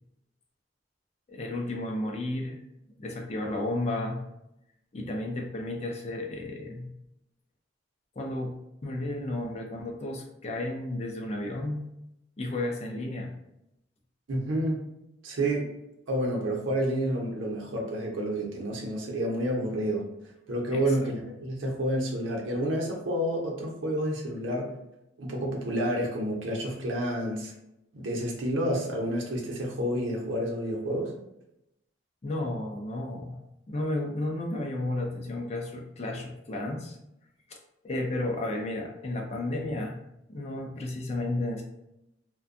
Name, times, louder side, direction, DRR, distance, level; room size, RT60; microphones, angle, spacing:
voice 1, 1.3-2.6 3.0-4.2 4.9-6.9 8.2-8.5 8.8-11.9 12.4-13.3 20.7-20.9 32.2-33.4 33.7-37.0 37.5-37.6 37.8-40.0 40.3-41.6, left 1 dB, 35° left, 2 dB, 0.4 m, -32 dB
voice 2, 14.3-14.8 15.2-15.7 16.1-20.1 20.5-24.7 25.2-27.5 27.9-31.1, right 1 dB, 90° right, -1 dB, 0.6 m, -29 dB
2.5 x 2.2 x 2.5 m, 0.85 s
head